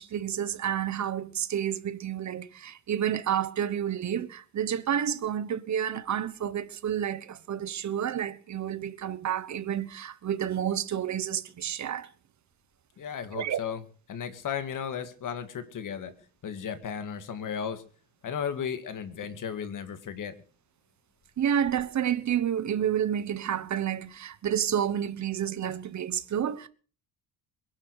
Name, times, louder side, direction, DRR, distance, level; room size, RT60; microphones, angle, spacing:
voice 1, 0.0-12.1 13.3-13.6 21.4-26.7, right 9 dB, 50° right, 1.3 m, -30 dB
voice 2, 13.0-16.1 16.4-17.8 18.2-20.3, left 7 dB, 55° left, 2.2 m, -35 dB
22.5 x 11.5 x 4.9 m
cardioid pair, 145°, 37 cm